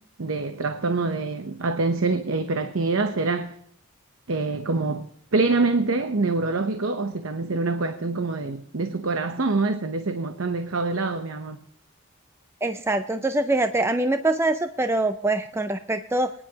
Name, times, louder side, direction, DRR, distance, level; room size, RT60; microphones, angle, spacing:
voice 1, 0.2-3.5 4.3-5.1 5.3-11.6, right 3 dB, 75° right, 0.8 m, -25 dB
voice 2, 12.6-16.3, right 2 dB, 10° right, 0.4 m, -24 dB
24.0 x 10.0 x 2.9 m
head